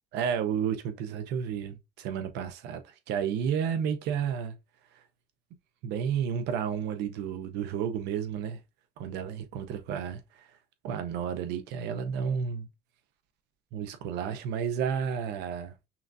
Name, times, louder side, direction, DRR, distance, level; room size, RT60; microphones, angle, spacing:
voice 1, 0.1-4.6 4.9-5.0 5.8-8.6 9.0-10.5 10.8-12.7 13.7-15.7, right 8 dB, 90° right, 0.7 m, -31 dB
5.7 x 2.6 x 2.6 m
cardioid pair, 110°, 17 cm